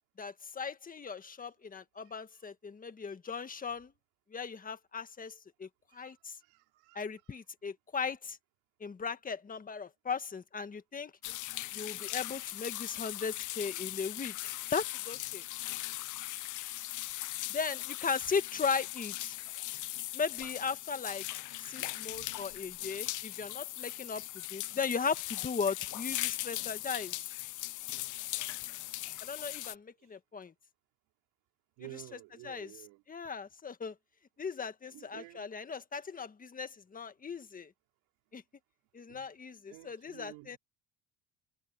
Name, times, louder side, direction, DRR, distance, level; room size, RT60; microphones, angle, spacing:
voice 1, 0.2-3.9 4.3-6.3 6.9-8.4 8.8-11.1 11.7-15.4 17.5-19.4 20.1-21.2 21.6-24.2 24.5-27.1 29.2-30.5 31.9-32.0 32.4-32.7 33.1-33.9 34.4-37.7 38.3-38.4 38.9-40.6, left 5 dB, 25° left, 1.6 m, -37 dB
voice 2, 6.4-7.0 7.3-7.4 12.0-12.7 22.1-22.4 31.8-33.0 34.9-35.5 39.1-39.3 39.7-40.6, right 21 dB, 85° right, 4.8 m, -52 dB
sound 1, 11.2-29.7, left 16 dB, 55° left, 0.7 m, -39 dB
cardioid pair, 115°, 36 cm